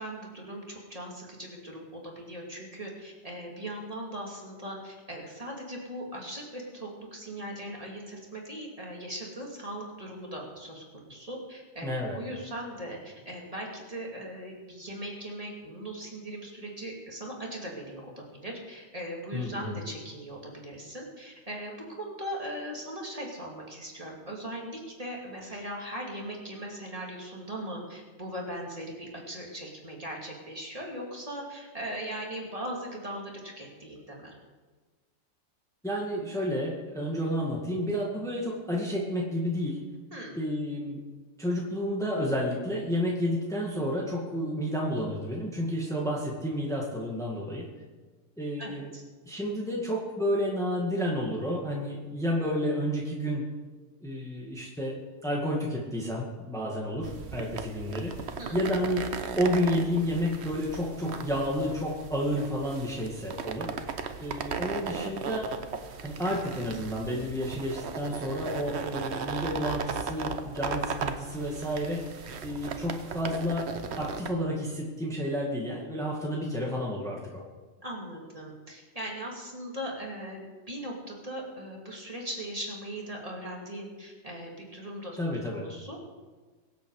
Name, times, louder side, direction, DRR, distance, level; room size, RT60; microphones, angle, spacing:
voice 1, 0.0-34.3 40.1-40.3 48.6-49.0 58.4-58.5 77.8-80.4 80.7-85.2 85.5-86.0, right 1 dB, 25° right, -2 dB, 2.8 m, -39 dB
voice 2, 11.8-12.2 19.3-19.8 35.8-39.8 40.3-41.0 41.4-47.7 48.4-48.9 49.3-53.4 54.0-59.1 59.3-63.7 64.2-65.5 66.0-73.7 74.0-77.4 85.2-85.7, equal, ahead, -3 dB, 2.0 m, -31 dB
sound 1, 57.0-74.3, right 6 dB, 60° right, 1.1 m, -37 dB
23.5 x 8.3 x 4.9 m, 1.3 s
omnidirectional pair, 1.4 m